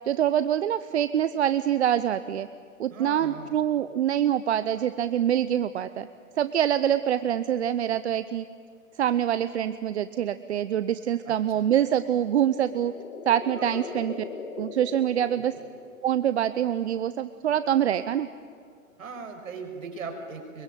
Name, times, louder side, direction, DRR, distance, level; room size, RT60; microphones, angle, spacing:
voice 1, 0.1-2.5 2.8-6.1 6.4-8.4 9.0-12.9 13.3-14.1 14.6-15.5 16.0-18.3, right 10 dB, 50° right, 13 dB, 0.8 m, -25 dB
voice 2, 2.9-3.5 11.3-11.4 13.5-13.9 15.3-15.4 19.0-20.6, right 4 dB, 65° right, 5 dB, 6.0 m, -39 dB
sound 1, 12.0-16.2, left 4 dB, 60° left, 2.9 m, -40 dB
24.5 x 23.0 x 9.2 m, 2.3 s
hypercardioid pair, 150°, 42 cm